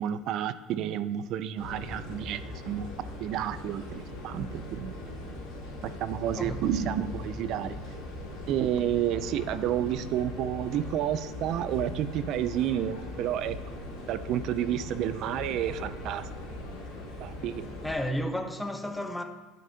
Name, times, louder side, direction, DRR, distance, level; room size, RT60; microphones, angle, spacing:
voice 1, 0.0-2.9 3.2-4.9 5.8-7.8 8.5-13.8 14.1-16.3 17.2-17.6, right 10 dB, 60° right, 0.4 m, -30 dB
sound 1, 1.6-18.0, left 1 dB, 70° left, 2.2 m, -40 dB
voice 2, 6.4-6.7 17.8-19.2, equal, 5° left, 0.6 m, -32 dB
10.0 x 5.0 x 2.8 m
supercardioid pair, 90°, 0 cm